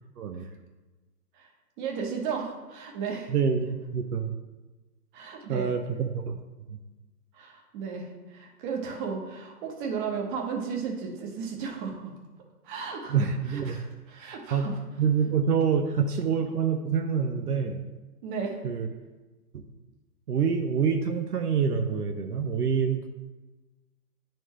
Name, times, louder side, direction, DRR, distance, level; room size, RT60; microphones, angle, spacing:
voice 1, 1.8-3.3 5.1-5.7 7.3-12.1 12.6-14.7 18.2-18.6, right 6 dB, 30° right, 1 dB, 1.2 m, -34 dB
voice 2, 3.3-4.3 5.5-6.4 6.7-6.8 13.1-13.8 14.5-14.6 15.0-17.8 18.6-18.9 19.5-19.6 20.3-23.1, right 6 dB, 75° right, 5 dB, 0.8 m, -26 dB
9.6 x 4.4 x 3.1 m, 1.2 s
hypercardioid pair, 130°, 47 cm